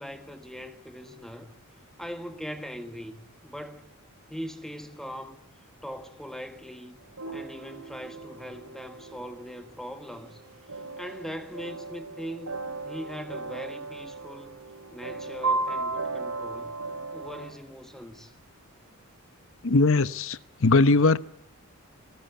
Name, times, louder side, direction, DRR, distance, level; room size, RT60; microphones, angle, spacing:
voice 1, 0.0-1.5 2.0-3.9 4.3-5.4 5.8-7.0 7.3-10.4 10.7-14.6 14.9-16.8 17.1-18.3, equal, ahead, 1.4 m, -40 dB
sound 1, 7.0-17.5, right 3 dB, 85° right, 5.2 m, -35 dB
voice 2, 19.6-21.2, left 3 dB, 60° left, 0.9 m, -20 dB
27.0 x 20.0 x 8.3 m
head